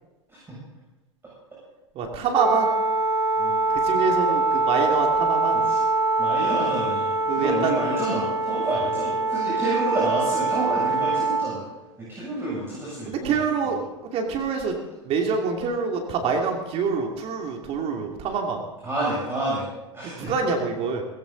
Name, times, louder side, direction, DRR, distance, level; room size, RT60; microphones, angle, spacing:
voice 1, 1.9-2.7 3.7-5.6 7.3-7.7 13.1-13.8 14.1-14.8 15.0-18.6 20.0-21.0, right 5 dB, 40° right, 2 dB, 2.8 m, -26 dB
Wind instrument woodwind instrument, 2.3-11.5, right 3 dB, 75° right, 4.4 m, -24 dB
voice 2, 6.2-7.1 7.4-11.6 12.0-13.4 18.8-19.7 19.9-20.5, right 1 dB, 15° right, -6 dB, 7.8 m, -29 dB
19.0 x 16.5 x 4.1 m, 1.1 s
hypercardioid pair, 95°, 16 cm